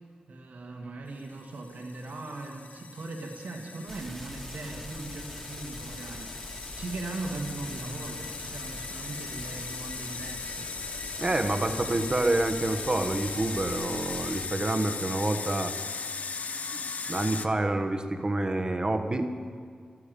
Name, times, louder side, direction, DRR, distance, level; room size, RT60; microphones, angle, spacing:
voice 1, 0.3-6.3 6.6-10.7 11.6-12.0, right 2 dB, 80° right, 1 dB, 2.0 m, -39 dB
sound 1, 1.4-17.5, left 5 dB, 65° left, 0.8 m, -38 dB
sound 2, 3.9-14.5, equal, 5° left, 1.9 m, -43 dB
voice 2, 11.2-15.7 16.7-16.8 17.1-19.3, right 2 dB, 30° right, 7 dB, 1.2 m, -28 dB
15.5 x 13.0 x 6.8 m, 2.2 s
wide cardioid pair, 115°, 3 cm